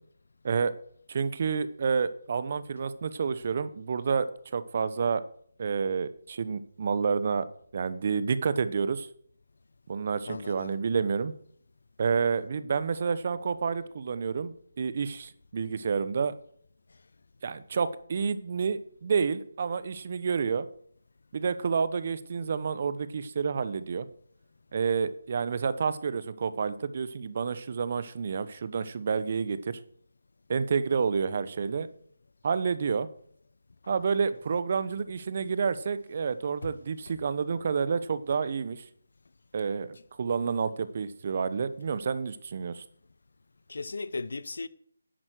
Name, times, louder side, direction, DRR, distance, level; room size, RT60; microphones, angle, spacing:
voice 1, 1.1-4.3 4.5-5.2 5.6-7.4 7.7-9.1 9.9-11.3 12.0-16.3 17.4-20.7 21.3-24.1 24.7-29.8 30.5-31.9 32.4-33.1 33.9-38.8 39.5-42.8, right 5 dB, 45° right, 0.9 m, -29 dB
voice 2, 10.3-10.8 43.7-44.7, left 3 dB, 65° left, 0.9 m, -36 dB
10.5 x 8.9 x 6.4 m
figure-of-eight pair, 160°, 0 cm